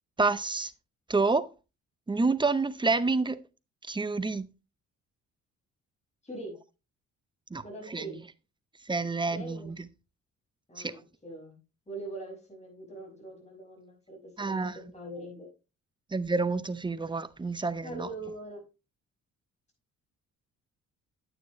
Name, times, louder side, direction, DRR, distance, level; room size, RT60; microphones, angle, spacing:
voice 1, 0.2-0.7 1.1-1.5 2.1-3.4 3.9-4.5 7.5-7.6 7.9-8.0 8.9-9.7 10.8-10.9 14.4-14.7 16.1-18.1, right 3 dB, 15° right, 0.7 m, -28 dB
voice 2, 6.2-6.5 7.6-8.2 9.3-9.7 10.7-11.6 11.9-15.5 17.8-18.6, right 2 dB, 20° left, 5.7 m, -42 dB
9.4 x 9.0 x 3.1 m
cardioid pair, 90°, 30 cm